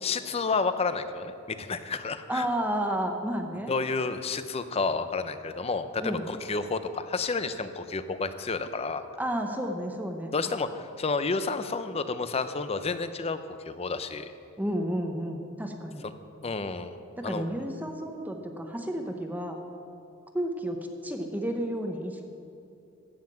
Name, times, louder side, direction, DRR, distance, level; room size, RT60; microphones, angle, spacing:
voice 1, 0.0-2.5 3.7-9.1 10.3-13.4 13.7-14.3 16.0-16.1 16.4-16.9 17.2-17.4, left 4 dB, 30° left, 11 dB, 0.6 m, -30 dB
voice 2, 2.3-3.8 6.0-6.3 9.2-10.3 14.6-16.0 17.2-19.6 20.3-22.2, right 1 dB, 10° right, 4 dB, 0.8 m, -31 dB
15.0 x 5.8 x 9.0 m, 2.8 s
head